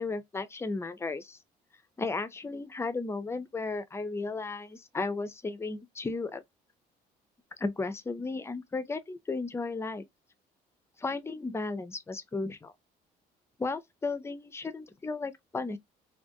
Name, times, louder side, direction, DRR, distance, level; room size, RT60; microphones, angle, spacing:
voice 1, 0.0-1.4 2.0-6.4 7.6-10.0 11.0-12.7 13.6-15.8, left 3 dB, 15° left, 0.4 m, -34 dB
2.4 x 2.2 x 2.5 m
cardioid pair, 110°, 17 cm